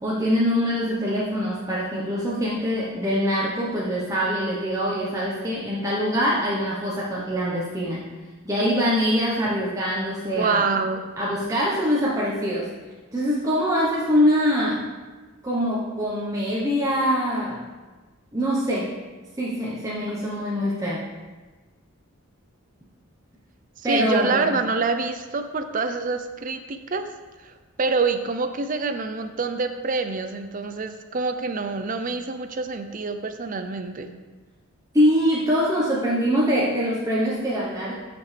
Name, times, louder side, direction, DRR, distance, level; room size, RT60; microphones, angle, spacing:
voice 1, 0.0-8.0 8.4-10.7 11.2-12.7 13.1-14.8 15.4-17.6 18.3-18.9 19.4-21.0 23.8-24.6 34.9-37.9, equal, 15° right, -7 dB, 0.9 m, -23 dB
voice 2, 10.4-11.0 23.8-27.1 27.4-34.1, right 4 dB, 40° right, 8 dB, 0.5 m, -26 dB
14.0 x 5.2 x 3.3 m, 1.3 s
head